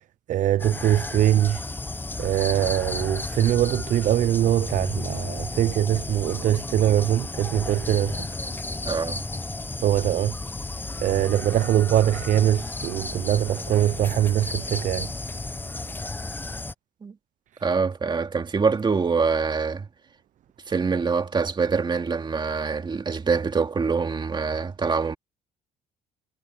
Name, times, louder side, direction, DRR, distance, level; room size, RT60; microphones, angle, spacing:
voice 1, 0.3-1.6 2.2-8.3 9.8-10.4 11.0-15.1 17.5-17.6, right 12 dB, 50° right, 0.4 m, -22 dB
sound 1, 0.6-16.7, left 2 dB, 10° left, 0.7 m, -33 dB
sound 2, 1.1-16.7, right 2 dB, 10° right, 5.0 m, -53 dB
voice 2, 8.8-9.2 17.0-17.1 17.6-19.9 20.7-25.2, right 5 dB, 25° right, 2.3 m, -25 dB
cardioid pair, 110°, 17 cm